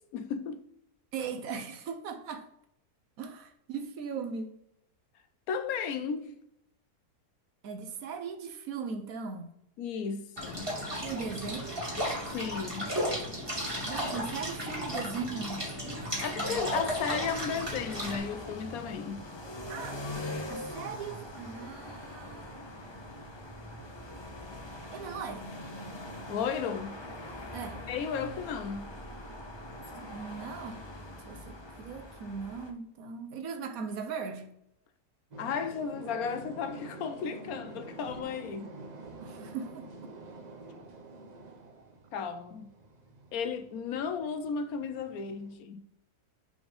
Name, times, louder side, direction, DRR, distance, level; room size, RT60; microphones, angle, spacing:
voice 1, 0.1-0.6 5.5-6.4 9.8-10.7 12.3-13.0 16.2-19.3 26.3-27.0 27.9-28.9 35.4-38.7 42.1-42.7 43.3-45.9, left 6 dB, 70° left, 1.0 m, -34 dB
voice 2, 1.1-2.5 3.2-4.5 7.6-9.5 11.0-11.8 13.8-16.7 19.7-20.0 20.5-22.5 24.9-25.5 27.5-27.8 30.0-30.8 31.3-34.5 39.2-39.9, right 5 dB, 65° right, 1.1 m, -39 dB
sound 1, 10.4-18.2, equal, 15° right, 2.1 m, -34 dB
sound 2, 16.5-32.7, left 1 dB, 30° left, 0.5 m, -43 dB
sound 3, 35.3-45.5, right 3 dB, 40° right, 0.7 m, -48 dB
5.1 x 3.6 x 5.3 m
omnidirectional pair, 1.7 m